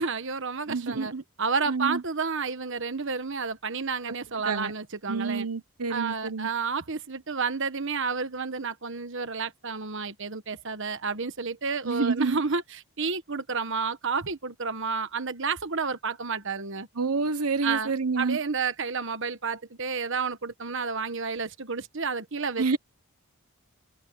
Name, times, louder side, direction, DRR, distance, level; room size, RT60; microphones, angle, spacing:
voice 1, 0.0-1.1 1.4-5.5 5.9-16.9 17.6-22.8, right 5 dB, 55° right, 1.3 m, -31 dB
voice 2, 0.7-1.2 1.7-2.0 4.4-4.7 5.1-6.5 11.8-12.4 17.0-18.4 22.6-22.8, right 4 dB, 85° right, 1.1 m, -28 dB
head